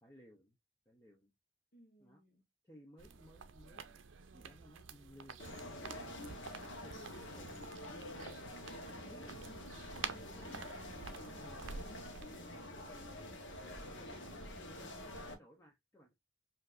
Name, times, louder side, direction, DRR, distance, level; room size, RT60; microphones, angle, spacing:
voice 1, 0.0-0.6 0.9-1.3 2.0-2.2 2.6-4.1 4.3-6.0 6.7-12.0 12.6-13.2 13.8-16.1, equal, 15° left, 0.6 m, -60 dB
voice 2, 1.7-2.4 12.2-14.6, equal, 45° left, 1.0 m, -61 dB
sound 1, 3.0-12.2, right 6 dB, 90° right, 0.5 m, -50 dB
sound 2, 5.4-15.3, left 1 dB, 85° left, 1.0 m, -47 dB
5.0 x 2.6 x 2.4 m
head